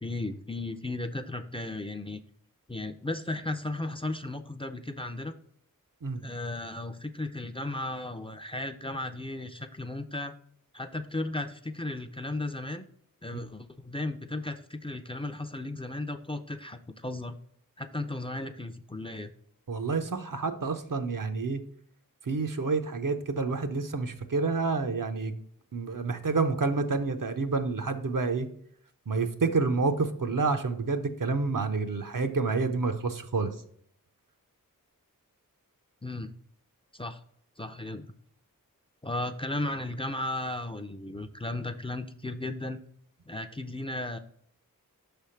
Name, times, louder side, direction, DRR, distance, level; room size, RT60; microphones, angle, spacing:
voice 1, 0.0-2.2 2.7-5.3 6.2-10.3 10.7-12.9 13.2-17.4 17.8-19.3 36.0-36.3 36.9-37.2 37.6-38.1 39.0-42.8 43.3-44.2, left 2 dB, 15° left, 9 dB, 0.5 m, -35 dB
voice 2, 19.7-21.6 22.2-25.3 25.7-28.5 29.1-33.5, right 4 dB, 65° right, 7 dB, 0.7 m, -28 dB
5.6 x 3.4 x 5.6 m, 0.65 s
wide cardioid pair, 45°, 34 cm